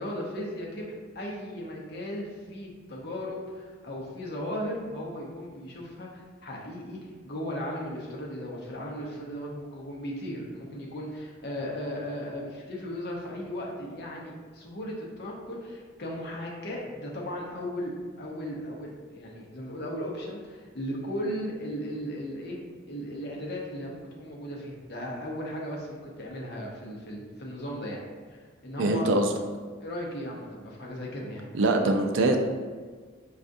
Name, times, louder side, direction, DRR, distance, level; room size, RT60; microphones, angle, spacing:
voice 1, 0.0-17.9 18.2-22.6 22.9-28.0 28.3-29.1 29.8-31.5, equal, 55° left, -2 dB, 0.7 m, -36 dB
voice 2, 28.8-29.3 31.5-32.4, right 2 dB, 70° right, 4 dB, 0.4 m, -23 dB
4.9 x 2.4 x 2.6 m, 1.5 s
head